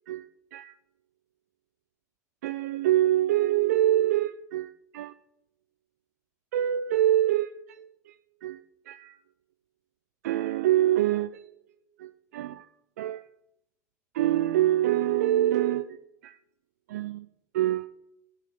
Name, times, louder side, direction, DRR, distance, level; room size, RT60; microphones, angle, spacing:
voice 1, 0.1-0.7 2.4-5.1 6.5-9.2 10.2-11.5 12.0-12.7 13.0-13.3 14.1-16.4 16.9-17.3 17.5-17.9, right 13 dB, 70° right, 13 dB, 0.4 m, -26 dB
9.6 x 6.7 x 7.8 m, 0.78 s
hypercardioid pair, 85°, 9 cm